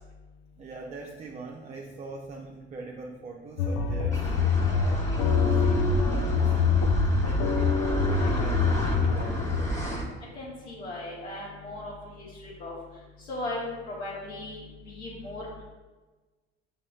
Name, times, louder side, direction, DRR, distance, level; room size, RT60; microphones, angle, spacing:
voice 1, 0.6-5.3 5.6-7.0 7.2-9.8, right 3 dB, 20° right, 0 dB, 0.4 m, -42 dB
sound 1, 3.6-9.6, left 5 dB, 55° left, 0.5 m, -25 dB
sound 2, 4.1-10.1, right 1 dB, 20° left, 1.1 m, -31 dB
voice 2, 10.3-11.9 12.2-12.7 13.2-15.5, left 2 dB, 85° left, -7 dB, 1.0 m, -37 dB
6.0 x 3.2 x 2.3 m, 1.2 s
hypercardioid pair, 60°, 33 cm